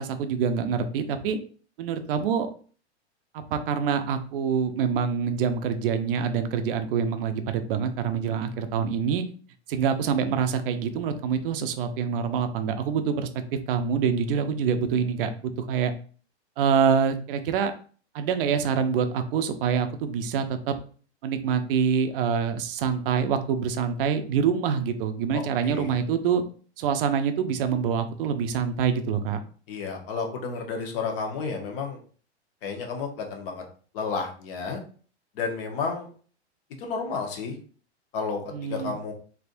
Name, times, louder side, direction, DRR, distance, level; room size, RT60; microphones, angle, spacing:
voice 1, 0.0-1.4 1.8-2.5 3.3-9.2 9.7-15.9 16.6-17.7 18.1-20.8 21.2-26.4 26.8-29.4 38.5-39.0, right 7 dB, 55° right, 8 dB, 0.5 m, -26 dB
voice 2, 25.3-25.9 29.7-32.0 32.6-33.6 33.9-34.8 35.3-36.1 36.8-37.6 38.1-38.4 38.7-39.1, left 4 dB, 50° left, 3 dB, 1.0 m, -31 dB
3.4 x 2.6 x 2.5 m, 0.42 s
hypercardioid pair, 125°, 34 cm